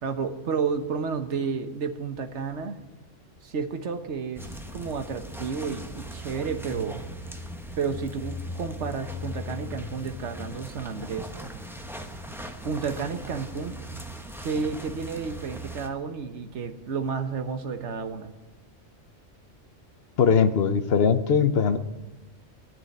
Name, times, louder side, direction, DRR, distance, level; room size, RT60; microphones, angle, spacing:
voice 1, 0.0-2.8 3.4-4.4 4.7-7.0 7.8-11.3 12.6-13.8 14.4-18.3, right 5 dB, 65° right, 8 dB, 1.4 m, -31 dB
sound 1, 4.4-15.9, equal, ahead, 0.9 m, -39 dB
voice 2, 20.2-21.8, left 6 dB, 55° left, 11 dB, 1.0 m, -20 dB
18.5 x 6.9 x 9.7 m, 1.1 s
omnidirectional pair, 1.3 m